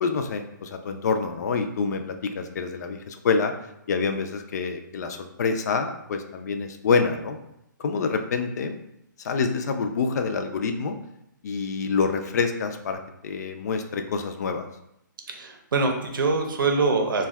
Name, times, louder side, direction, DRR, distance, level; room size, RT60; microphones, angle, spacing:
voice 1, 0.0-3.5 3.9-7.4 7.8-8.8 9.2-11.0 11.4-14.7, left 5 dB, 55° left, 7 dB, 0.4 m, -27 dB
voice 2, 15.3-17.2, right 3 dB, 85° right, 3 dB, 0.6 m, -24 dB
2.6 x 2.2 x 3.3 m, 0.79 s
hypercardioid pair, 155°, 11 cm